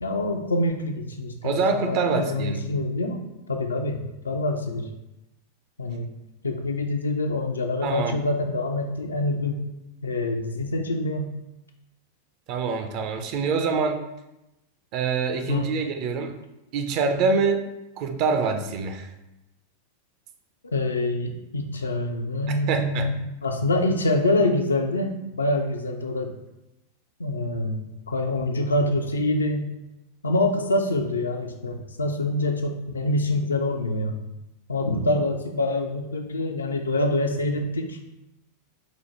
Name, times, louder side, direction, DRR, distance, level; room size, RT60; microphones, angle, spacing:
voice 1, 0.0-3.2 3.5-4.0 4.2-4.9 5.8-6.1 6.4-9.6 10.0-11.3 15.5-15.7 20.7-25.1 25.4-26.3 27.2-29.7 30.2-34.2 34.7-38.0, left 2 dB, 75° left, 5 dB, 0.4 m, -25 dB
voice 2, 1.4-2.6 7.8-8.1 12.5-14.0 14.9-16.3 16.7-17.6 18.0-19.1 22.7-23.1, right 4 dB, 45° right, 6 dB, 0.4 m, -25 dB
4.9 x 2.0 x 2.9 m, 0.94 s
figure-of-eight pair, 90°, 0 cm